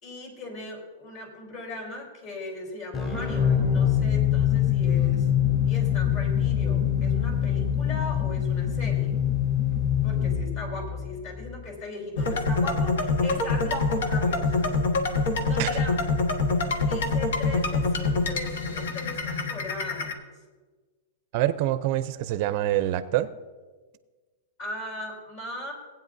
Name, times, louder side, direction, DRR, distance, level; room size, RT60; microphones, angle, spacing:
voice 1, 0.0-5.3 5.6-9.2 10.0-14.7 15.2-15.9 16.8-20.2 24.6-25.7, left 2 dB, 45° left, 0 dB, 3.6 m, -38 dB
sound 1, 2.9-11.6, left 9 dB, 20° left, 3.0 m, -24 dB
sound 2, 12.2-20.1, left 3 dB, 85° left, 1.3 m, -25 dB
voice 2, 21.3-23.3, right 14 dB, 45° right, 13 dB, 0.5 m, -25 dB
18.5 x 9.0 x 2.6 m, 1.3 s
supercardioid pair, 150°, 0 cm